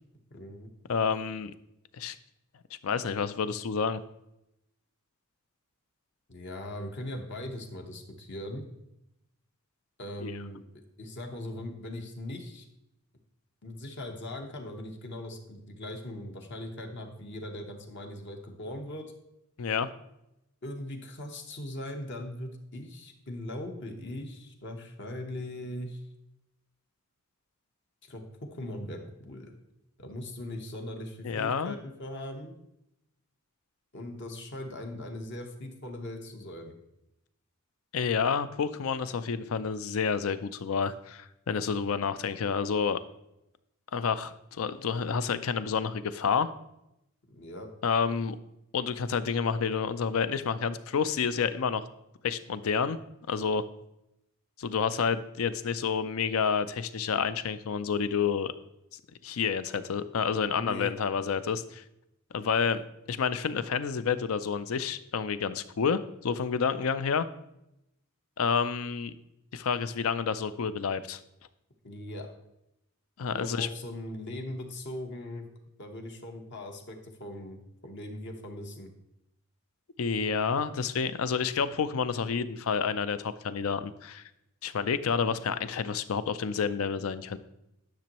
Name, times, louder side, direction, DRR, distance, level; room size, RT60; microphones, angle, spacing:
voice 1, 0.3-0.7 6.3-8.6 10.0-10.6 11.0-12.7 13.6-19.1 20.6-26.0 28.0-29.5 30.0-32.5 33.9-36.7 47.3-47.7 60.5-60.9 71.8-72.3 73.3-75.4 75.8-78.9, left 1 dB, 55° left, 3 dB, 1.0 m, -40 dB
voice 2, 0.9-1.5 2.0-2.2 2.8-4.0 10.2-10.3 19.6-19.9 31.2-31.8 37.9-43.0 43.9-46.5 47.8-48.4 48.7-51.9 52.2-53.0 53.3-53.6 54.6-58.5 59.2-61.8 62.3-62.8 63.1-67.3 68.4-69.1 69.5-71.2 73.2-73.7 80.0-84.2 84.6-87.4, left 6 dB, 75° left, 13 dB, 0.4 m, -29 dB
10.5 x 6.1 x 3.0 m, 0.84 s
head